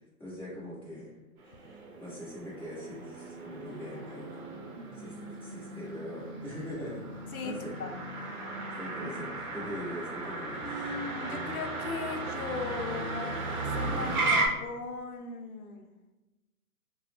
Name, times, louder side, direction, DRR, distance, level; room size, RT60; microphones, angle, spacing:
voice 1, 0.2-1.1 1.4-4.4 4.9-7.8 8.3-8.5 8.8-10.6, equal, 5° left, -12 dB, 0.8 m, -42 dB
Motor vehicle (road), 1.4-14.5, right 3 dB, 70° right, 0.7 m, -35 dB
voice 2, 7.3-8.0 10.6-13.4 13.7-15.9, left 3 dB, 75° left, 5 dB, 0.6 m, -38 dB
2.4 x 2.1 x 3.3 m, 1.1 s
hypercardioid pair, 140°, 45 cm